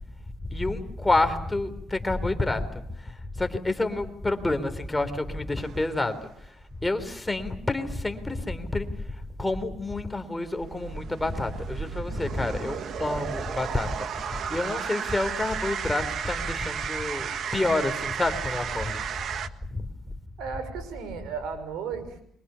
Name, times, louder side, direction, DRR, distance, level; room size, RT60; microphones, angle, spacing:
voice 1, 0.5-6.2 6.8-19.0 19.7-19.9, left 2 dB, 15° left, 8 dB, 3.7 m, -29 dB
sound 1, 5.6-6.3 10.3-19.5, right 8 dB, 65° right, 1.6 m, -34 dB
voice 2, 20.4-22.2, right 6 dB, 90° right, 11 dB, 5.7 m, -35 dB
29.0 x 24.5 x 7.0 m, 0.68 s
cardioid pair, 90°, 0 cm